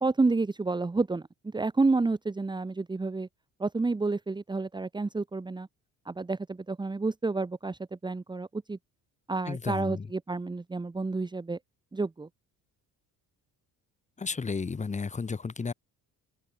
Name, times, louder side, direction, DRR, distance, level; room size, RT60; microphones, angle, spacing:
voice 1, 0.0-3.3 3.6-5.7 6.1-8.8 9.3-11.6 11.9-12.3, right 3 dB, 15° right, 1.9 m, -30 dB
voice 2, 9.5-10.1 14.2-15.7, left 4 dB, 20° left, 4.0 m, -33 dB
open air
cardioid pair, 150°, 33 cm